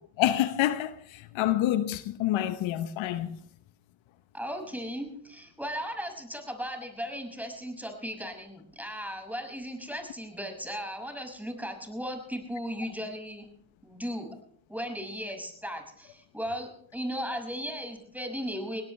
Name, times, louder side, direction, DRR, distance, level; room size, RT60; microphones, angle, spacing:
voice 1, 0.2-3.4, left 13 dB, 75° left, 1.0 m, -27 dB
voice 2, 4.3-13.5 13.8-14.3 14.7-18.8, equal, 5° right, 6.1 m, -36 dB
23.0 x 17.5 x 3.3 m
hypercardioid pair, 45°, 47 cm